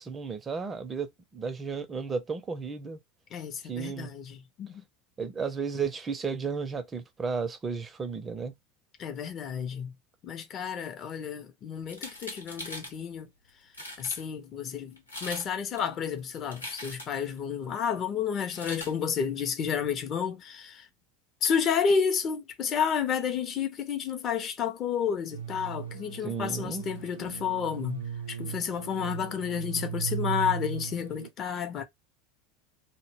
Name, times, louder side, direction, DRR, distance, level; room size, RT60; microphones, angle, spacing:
voice 1, 0.0-3.0 3.6-4.1 5.2-8.5 26.2-26.8, right 5 dB, 25° right, 0.4 m, -33 dB
voice 2, 3.3-4.8 9.0-9.9 10.2-13.3 14.0-20.9 21.4-31.8, left 7 dB, 40° left, 0.5 m, -31 dB
sound 1, 11.8-13.0 13.5-13.6 13.7-14.2 15.0-15.5 15.8-17.3 18.4-18.9, left 1 dB, 90° left, 0.8 m, -41 dB
sound 2, 25.3-31.3, right 8 dB, 80° right, 0.4 m, -37 dB
2.1 x 2.0 x 3.2 m
figure-of-eight pair, 75°, 0 cm